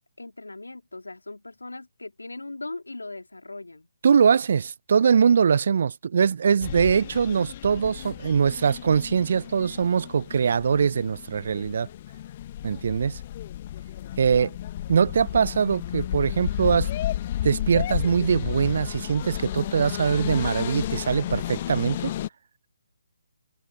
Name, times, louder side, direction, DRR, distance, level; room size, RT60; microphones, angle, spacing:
voice 1, 0.2-3.9, left 2 dB, 80° left, 2.6 m, -39 dB
voice 2, 4.0-11.9 12.6-13.2 14.2-14.6 14.9-16.9 17.4-22.1, right 6 dB, 50° right, 0.4 m, -22 dB
sound 1, 6.6-22.3, left 12 dB, 35° left, 0.9 m, -33 dB
figure-of-eight pair, 140°, 0 cm